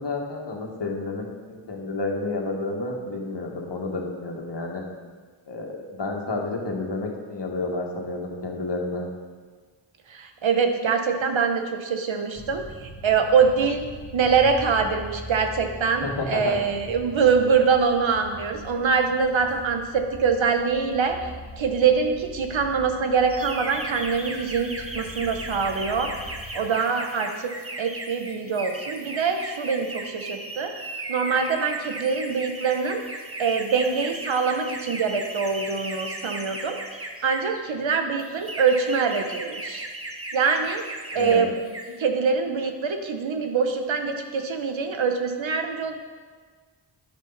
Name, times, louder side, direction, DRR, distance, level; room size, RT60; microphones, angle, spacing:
voice 1, 0.0-4.8 5.5-9.1 16.0-16.6 41.1-41.4, left 2 dB, 60° left, 0 dB, 2.1 m, -30 dB
voice 2, 10.1-13.8 14.1-21.3 21.6-26.1 26.5-27.5 27.8-33.0 33.4-36.8 37.2-39.9 40.3-40.8 41.1-41.5 42.0-45.9, right 5 dB, 75° right, 5 dB, 1.2 m, -24 dB
sound 1, 12.3-26.5, equal, 35° left, 1.9 m, -42 dB
sound 2, 23.3-37.6 38.2-41.4 41.6-42.0, right 2 dB, 30° right, 1.5 m, -36 dB
10.5 x 10.5 x 4.2 m, 1.5 s
cardioid pair, 55°, 47 cm